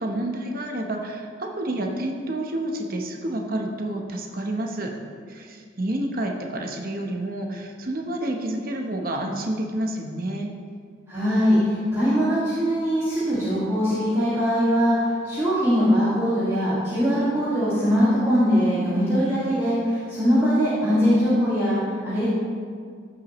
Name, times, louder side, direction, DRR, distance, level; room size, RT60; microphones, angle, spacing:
voice 1, 0.0-4.9 5.3-10.5, right 1 dB, 45° right, 2 dB, 0.9 m, -29 dB
voice 2, 11.1-21.8 22.0-22.3, equal, 15° right, -13 dB, 1.8 m, -21 dB
14.0 x 6.0 x 3.1 m, 2.1 s
head